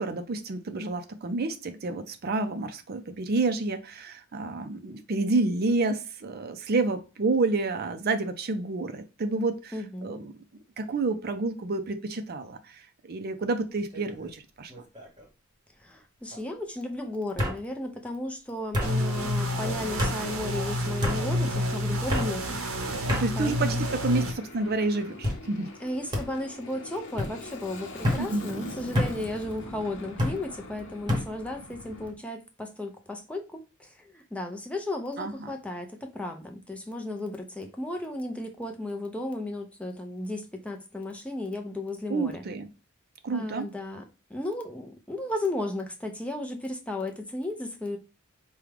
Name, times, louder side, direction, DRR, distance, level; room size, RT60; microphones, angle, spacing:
voice 1, 0.0-9.7 10.0-10.3 10.8-14.7 22.8-25.7 28.2-28.7 35.2-35.5 42.1-42.7 43.2-43.7, right 3 dB, 50° right, 0.5 m, -29 dB
voice 2, 9.7-10.2 15.8-23.9 25.8-42.4 43.3-44.0 44.3-48.0, left 1 dB, 5° left, 0.6 m, -35 dB
sound 1, 13.9-14.3 14.7-15.2 16.3-16.4 17.4-17.6 18.7-18.9 20.0-20.2 21.0-21.2 22.1-22.3 23.1-23.3 24.0-24.4 25.2-25.4 26.1-26.3 27.2-27.3 28.0-28.3 28.9-29.2 30.2-30.4 31.1-31.3, left 1 dB, 20° right, 1.1 m, -28 dB
sound 2, 18.8-24.3, left 1 dB, 90° right, 0.8 m, -29 dB
Aircraft, 23.3-32.1, left 2 dB, 60° left, 0.8 m, -43 dB
4.9 x 2.3 x 3.3 m
head